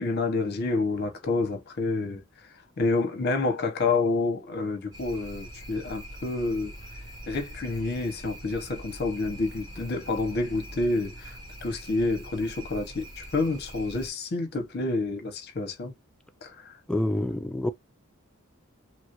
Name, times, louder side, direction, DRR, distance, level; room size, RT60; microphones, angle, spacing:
voice 1, 0.0-2.2 2.8-6.7 7.3-15.9 16.4-16.7, left 3 dB, 45° left, 0.8 m, -28 dB
sound 1, 4.9-14.1, right 1 dB, 15° right, 1.1 m, -43 dB
voice 2, 16.9-17.7, left 1 dB, 5° left, 0.3 m, -27 dB
3.0 x 2.4 x 2.9 m
head